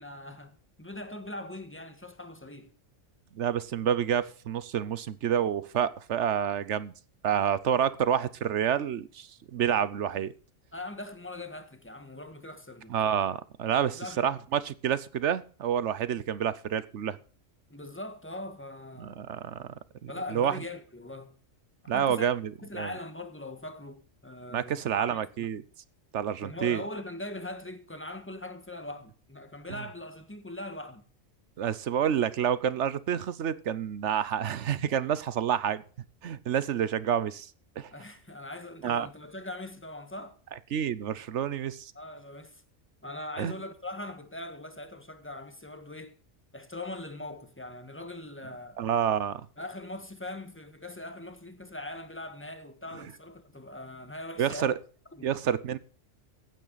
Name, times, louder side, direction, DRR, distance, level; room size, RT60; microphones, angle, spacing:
voice 1, 0.0-2.7 10.7-12.9 13.9-14.4 17.7-19.3 20.1-21.3 21.8-22.3 22.6-25.5 26.4-31.0 37.9-40.4 41.9-42.6 43.0-46.1 46.5-48.8 49.6-54.7 55.1-55.3, left 1 dB, 10° left, 1.5 m, -41 dB
voice 2, 3.4-6.9 7.2-10.3 12.9-17.2 19.0-19.7 20.0-20.6 21.9-22.9 24.5-25.6 26.1-26.8 31.6-35.8 36.2-37.5 37.8-37.9 38.8-39.1 40.7-41.9 43.4-43.5 48.8-49.4 54.4-54.7 55.2-55.8, right 9 dB, 70° right, 1.0 m, -28 dB
15.5 x 9.0 x 4.0 m
omnidirectional pair, 1.3 m